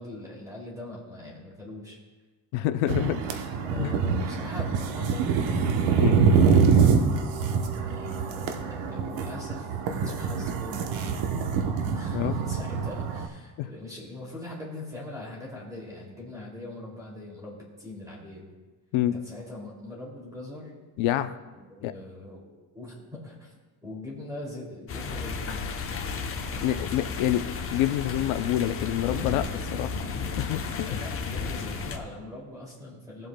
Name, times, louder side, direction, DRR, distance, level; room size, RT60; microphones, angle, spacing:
voice 1, 0.0-2.0 3.6-7.1 7.8-10.9 11.8-18.5 19.1-20.7 21.5-22.5 22.7-25.6 26.5-26.8 29.6-29.7 30.9-33.3, left 2 dB, 10° right, -3 dB, 2.5 m, -41 dB
voice 2, 2.5-3.2 3.8-3.9 6.0-6.2 12.1-12.3 13.6-13.7 18.9-19.2 21.0-21.4 21.8-21.9 26.6-29.9 30.4-30.9, left 12 dB, 85° left, 10 dB, 0.6 m, -27 dB
sound 1, 2.9-13.3, right 6 dB, 75° right, 1.0 m, -25 dB
sound 2, 24.9-32.0, left 5 dB, 30° left, 0.8 m, -33 dB
18.5 x 7.8 x 2.2 m, 1.3 s
cardioid pair, 160°, 46 cm